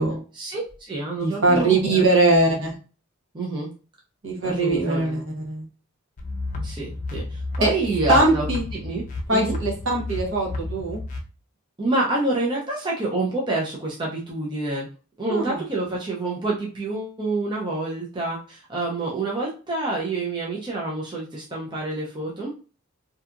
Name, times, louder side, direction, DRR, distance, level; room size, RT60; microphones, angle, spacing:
voice 1, 0.3-2.1 2.6-2.7 3.3-3.7 4.4-5.2 6.5-8.5 8.8-9.6 11.8-14.9 15.2-22.5, right 2 dB, 20° right, -4 dB, 0.5 m, -27 dB
voice 2, 1.2-2.8 4.2-5.6 7.6-7.7 8.1-8.6 9.3-11.0 15.3-15.6, right 2 dB, 60° right, -1 dB, 0.9 m, -21 dB
sound 1, 6.2-11.2, left 2 dB, 35° left, 0.4 m, -32 dB
2.7 x 2.3 x 2.4 m, 0.36 s
head